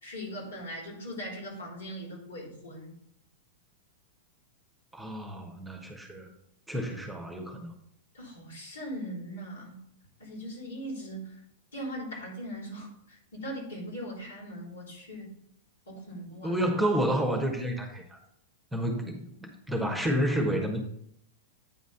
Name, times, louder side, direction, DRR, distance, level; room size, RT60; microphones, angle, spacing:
voice 1, 0.0-3.0 8.1-9.8 10.2-11.4 11.7-15.3 15.9-16.6, equal, 75° left, -2 dB, 3.3 m, -40 dB
voice 2, 4.9-6.3 6.7-7.7 16.4-18.2 18.7-20.8, equal, 5° right, 3 dB, 1.2 m, -30 dB
9.0 x 4.0 x 5.4 m, 0.73 s
figure-of-eight pair, 100°, 0 cm